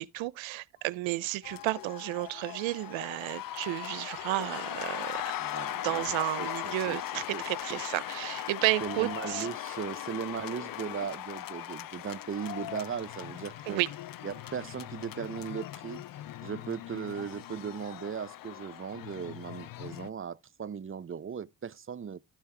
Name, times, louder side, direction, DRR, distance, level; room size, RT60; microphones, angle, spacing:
voice 1, 0.0-5.2 5.7-9.5 13.7-13.9, right 19 dB, 70° right, 0.7 m, -32 dB
sound 1, 0.7-1.0 1.4-2.0 2.4-3.0 3.4-4.0 4.4-5.0 5.4-6.0 6.4-7.0 7.4-8.0 8.4-9.0 9.4-10.0 10.4-11.0 11.4-12.0 12.4-13.0 13.4-14.0 14.4-15.0 15.4-16.0 16.4-17.0 17.4-18.0 18.4-19.0 19.4-19.7, left 11 dB, 15° left, 3.8 m, -58 dB
sound 2, 1.4-20.1, left 13 dB, 45° left, 0.6 m, -39 dB
sound 3, 4.3-11.1, left 12 dB, 75° left, 1.2 m, -50 dB
voice 2, 5.4-7.4 7.7-7.8 8.8-13.8 14.2-16.0 16.4-22.2, right 7 dB, 25° right, 0.6 m, -38 dB
12.5 x 5.6 x 3.3 m
hypercardioid pair, 50°, 48 cm